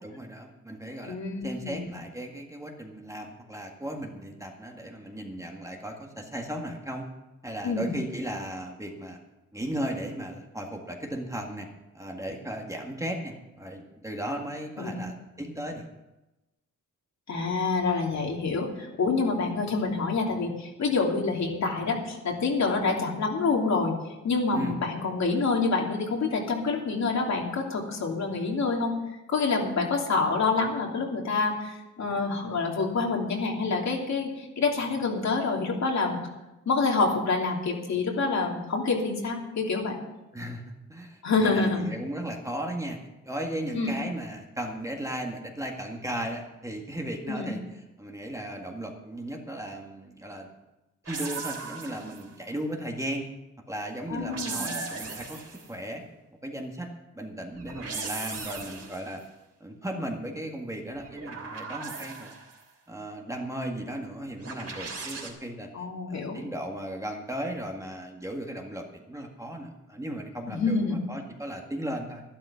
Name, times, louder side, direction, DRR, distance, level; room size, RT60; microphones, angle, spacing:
voice 1, 0.0-1.2 1.4-7.1 7.4-9.2 9.5-11.7 11.9-15.9 24.5-24.8 40.3-43.0 43.2-47.6 48.0-50.5 51.1-53.3 53.7-56.0 56.4-56.9 57.1-59.2 59.6-62.3 62.9-65.7 66.1-72.2, right 1 dB, 10° right, 1 dB, 1.8 m, -36 dB
voice 2, 1.1-1.9 7.6-7.9 14.8-15.0 17.3-23.9 24.2-28.9 29.3-36.2 36.7-40.0 41.2-41.9 43.7-43.9 47.3-47.6 54.1-54.7 65.7-66.4 70.5-71.0, left 4 dB, 60° left, 0 dB, 3.0 m, -27 dB
sound 1, 51.1-52.3 54.1-55.7 57.5-59.1 60.9-62.6 64.4-65.3, right 4 dB, 50° right, 3.1 m, -37 dB
12.5 x 12.0 x 5.8 m, 1.0 s
cardioid pair, 115°, 31 cm